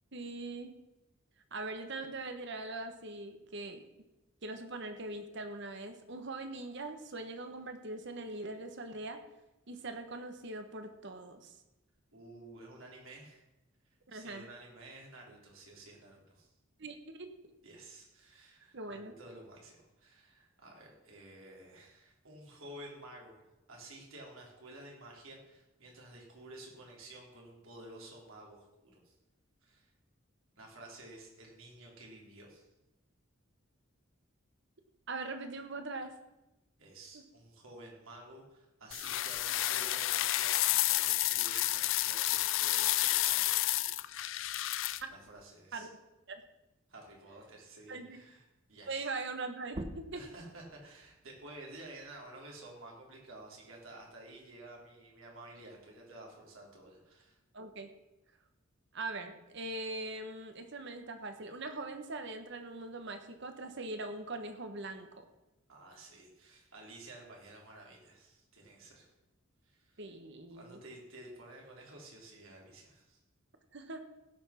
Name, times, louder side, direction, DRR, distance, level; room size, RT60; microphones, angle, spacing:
voice 1, 0.1-0.7 1.5-3.8 4.4-9.2 9.7-11.5 14.1-14.5 16.8-17.3 18.7-19.1 35.1-36.1 37.1-37.2 45.0-45.1 45.7-45.9 46.3-46.4 47.9-48.2 48.9-50.2 57.5-57.9 58.9-65.2 70.0-70.8 73.7-74.1, right 2 dB, 60° right, 7 dB, 1.4 m, -41 dB
voice 2, 12.1-13.4 14.1-16.5 17.6-29.1 29.6-29.9 30.6-32.7 36.8-43.9 44.2-44.6 45.1-45.9 46.9-49.1 50.1-57.4 65.7-69.1 69.7-70.0 70.5-73.2, right 2 dB, 80° right, -1 dB, 3.6 m, -52 dB
sound 1, 38.9-45.0, left 15 dB, 65° left, 0.4 m, -30 dB
sound 2, 49.7-54.9 55.3-57.1, right 1 dB, 30° right, 0.8 m, -50 dB
16.0 x 6.1 x 5.9 m, 0.98 s
head